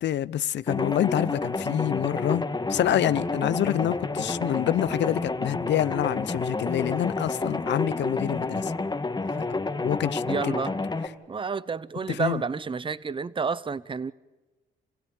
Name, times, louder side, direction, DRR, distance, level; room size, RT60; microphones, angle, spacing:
voice 1, 0.0-8.7 9.5-10.6 12.1-12.4, left 11 dB, 65° left, 0.7 m, -27 dB
sound 1, 0.7-11.1, left 3 dB, 20° left, 1.9 m, -30 dB
voice 2, 10.3-10.8 11.3-14.1, right 5 dB, 25° right, 0.8 m, -30 dB
28.0 x 16.5 x 8.9 m
cardioid pair, 90°, 20 cm